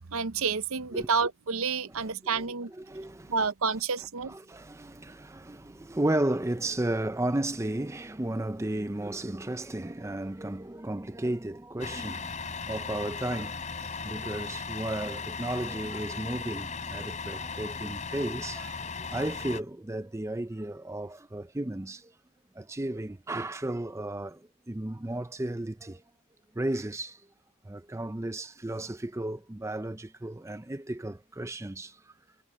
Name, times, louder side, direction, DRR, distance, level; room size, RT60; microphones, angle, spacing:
voice 1, 0.1-2.7 3.3-4.3, right 5 dB, 70° right, 0.7 m, -29 dB
voice 2, 2.3-3.3 4.2-12.3 12.6-22.1 22.5-26.0 26.5-27.2 27.6-32.1, right 1 dB, 15° right, 0.5 m, -34 dB
Truck, 11.8-19.6, left 5 dB, 35° left, 4.0 m, -37 dB
head